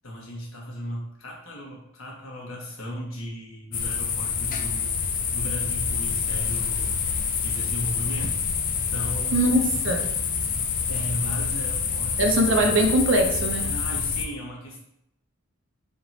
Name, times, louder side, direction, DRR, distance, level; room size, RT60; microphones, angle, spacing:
voice 1, 0.0-4.9 5.3-7.0 7.4-8.4 8.9-9.5 10.9-12.7 13.6-14.8, equal, 70° left, -2 dB, 1.2 m, -36 dB
sound 1, 3.7-14.3, left 6 dB, 40° left, 0.4 m, -27 dB
voice 2, 9.3-10.1 12.2-13.7, right 1 dB, 65° right, 3 dB, 0.6 m, -21 dB
3.5 x 2.9 x 4.0 m, 0.78 s
head